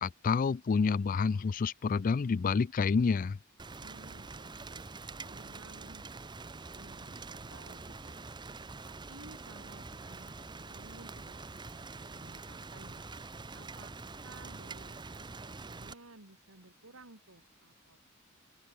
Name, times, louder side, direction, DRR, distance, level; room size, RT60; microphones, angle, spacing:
voice 1, 0.0-3.4, left 5 dB, 40° left, 0.4 m, -28 dB
Rain, 3.6-15.9, right 3 dB, 20° right, 0.7 m, -45 dB
voice 2, 3.8-8.3 8.8-13.0 13.5-13.9 14.2-18.0, right 2 dB, 70° right, 3.2 m, -56 dB
open air
head